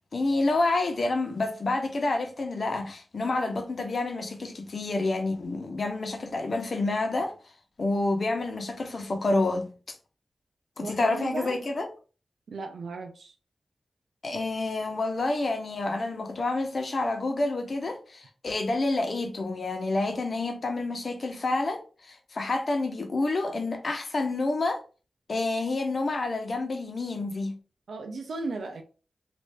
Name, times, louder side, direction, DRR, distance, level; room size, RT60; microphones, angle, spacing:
voice 1, 0.1-7.4 7.8-9.7 10.8-11.9 14.2-24.8 25.3-27.5, left 2 dB, 60° left, 0.8 m, -28 dB
voice 2, 10.8-11.6 12.5-13.3 27.9-28.8, right 3 dB, 90° right, 0.5 m, -36 dB
3.2 x 2.6 x 3.3 m
cardioid pair, 55°, 0 cm